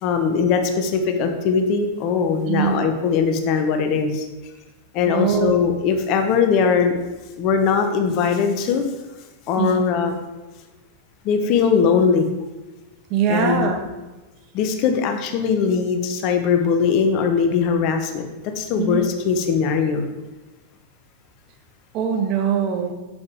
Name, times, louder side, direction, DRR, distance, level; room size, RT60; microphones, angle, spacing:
voice 1, 0.0-4.3 4.9-6.9 7.4-8.8 9.5-10.2 11.2-12.2 13.3-13.7 14.5-20.0, left 6 dB, 40° left, 6 dB, 0.9 m, -20 dB
voice 2, 5.1-5.7 9.6-9.8 13.1-13.8 18.8-19.0 21.9-22.9, right 7 dB, 40° right, 4 dB, 1.1 m, -22 dB
8.3 x 6.8 x 3.6 m, 1.1 s
figure-of-eight pair, 90°, 0 cm